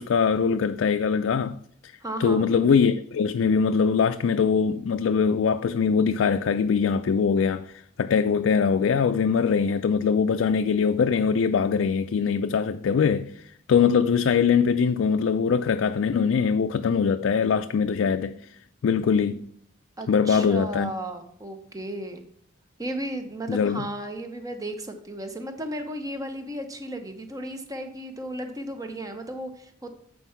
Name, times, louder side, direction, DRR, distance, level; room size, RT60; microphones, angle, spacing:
voice 1, 0.0-1.6 1.8-1.9 2.2-18.5 18.8-19.4 20.1-20.9 23.5-23.9, left 6 dB, 70° left, 0.3 m, -22 dB
voice 2, 2.0-2.5 20.0-22.2 22.8-29.9, right 1 dB, 15° right, 0.8 m, -34 dB
8.1 x 4.5 x 5.6 m
head